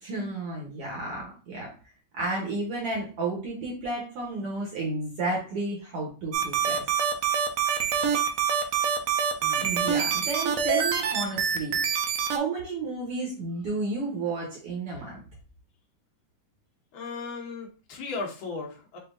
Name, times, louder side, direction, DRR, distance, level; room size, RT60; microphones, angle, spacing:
voice 1, 0.0-1.7 2.1-6.8 9.6-11.8 12.2-15.2, right 3 dB, 65° right, -2 dB, 1.6 m, -32 dB
sound 1, 6.3-12.4, right 7 dB, 80° right, 1.6 m, -25 dB
voice 2, 9.4-9.9 16.9-19.0, left 4 dB, 80° left, -2 dB, 2.8 m, -37 dB
6.6 x 2.8 x 2.5 m, 0.36 s
omnidirectional pair, 3.7 m